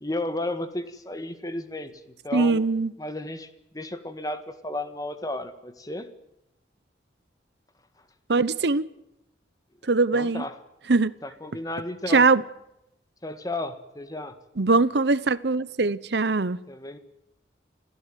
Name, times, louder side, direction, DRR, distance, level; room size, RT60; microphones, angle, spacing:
voice 1, 0.0-2.6 3.0-3.5 3.7-6.1 10.1-10.6 11.2-12.2 13.2-14.4 16.7-17.0, left 1 dB, 20° left, 1.6 m, -33 dB
voice 2, 2.3-2.9 8.3-8.9 9.9-10.4 10.9-11.1 12.1-12.4 14.6-16.6, right 3 dB, 65° right, 0.8 m, -21 dB
26.0 x 16.0 x 9.2 m
head